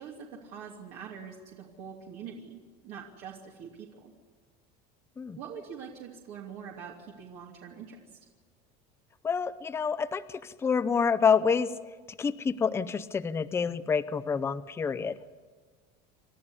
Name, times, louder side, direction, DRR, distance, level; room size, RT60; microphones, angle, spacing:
voice 1, 0.0-4.1 5.4-8.2, right 7 dB, 55° right, -1 dB, 2.8 m, -44 dB
voice 2, 9.2-11.7 12.2-15.2, left 6 dB, 15° left, 13 dB, 0.6 m, -28 dB
28.5 x 13.5 x 9.7 m, 1.5 s
cardioid pair, 165°, 20 cm